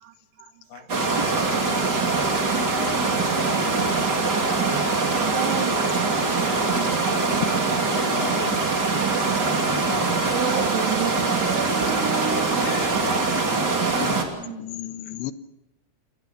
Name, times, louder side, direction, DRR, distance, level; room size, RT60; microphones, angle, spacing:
voice 1, 0.0-3.2 5.2-8.1 10.3-14.6 15.1-15.2, right 9 dB, 75° right, 3.4 m, -36 dB
voice 2, 0.7-1.2 2.4-3.8 4.5-5.0 6.7-6.8 7.2-8.9 9.9-10.4 12.6-13.3, left 7 dB, 65° left, 3.2 m, -40 dB
sound 1, 0.9-14.2, right 3 dB, 25° right, 2.8 m, -23 dB
voice 3, 14.0-15.3, left 13 dB, 90° left, 3.2 m, -34 dB
29.5 x 21.0 x 5.8 m
omnidirectional pair, 5.0 m